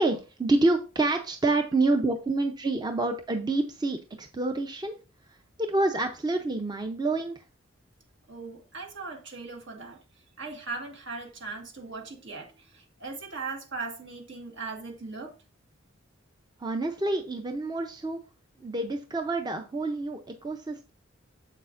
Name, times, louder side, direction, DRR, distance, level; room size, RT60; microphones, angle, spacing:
voice 1, 0.0-4.9 5.3-7.4 16.6-18.2 18.6-20.9, right 2 dB, 20° right, 0.6 m, -28 dB
voice 2, 8.3-10.0 10.4-15.3, right 4 dB, 65° right, 1.7 m, -39 dB
7.7 x 6.6 x 2.5 m
head